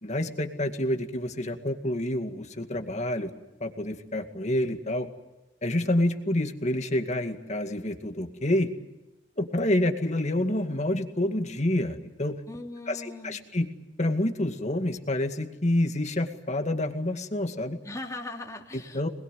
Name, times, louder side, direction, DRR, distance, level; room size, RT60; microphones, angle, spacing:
voice 1, 0.0-3.3 3.6-5.1 5.6-8.7 9.4-12.4 12.9-13.7 14.0-17.8 18.7-19.1, left 1 dB, 40° left, 6 dB, 2.2 m, -28 dB
voice 2, 12.5-13.4 17.8-19.1, left 2 dB, 20° left, 1 dB, 3.0 m, -39 dB
26.0 x 21.0 x 9.4 m, 1.0 s
head